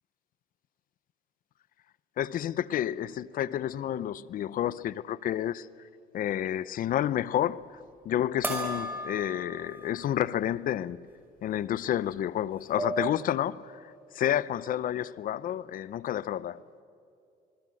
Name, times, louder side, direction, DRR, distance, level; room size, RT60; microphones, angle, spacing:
voice 1, 2.2-5.7 6.1-7.7 8.0-11.1 11.4-16.6, left 11 dB, 55° left, 0.6 m, -30 dB
sound 1, 8.4-10.1 10.5-10.6 12.1-12.2 12.5-13.2, right 1 dB, 10° right, 5.6 m, -35 dB
26.5 x 21.0 x 7.7 m
cardioid pair, 110°, 17 cm